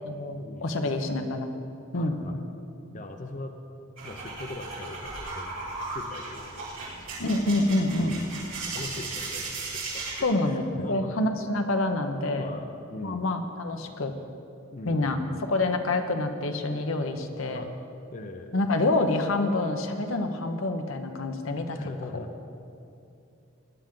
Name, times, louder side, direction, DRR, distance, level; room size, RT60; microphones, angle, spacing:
voice 1, 0.0-1.5 1.9-2.2 7.2-8.2 10.2-12.6 13.0-14.2 14.8-17.6 18.5-21.9, left 2 dB, 80° left, 6 dB, 1.0 m, -27 dB
voice 2, 1.9-2.4 2.9-3.5 4.0-5.5 5.8-6.9 8.0-8.3 8.7-10.0 10.4-11.1 12.4-13.3 14.7-15.5 17.5-17.7 18.1-18.6 21.7-22.3, left 2 dB, 40° left, 5 dB, 0.7 m, -41 dB
sound 1, 4.0-10.2, right 3 dB, 80° right, 3.7 m, -36 dB
19.5 x 10.0 x 3.8 m, 2.7 s
head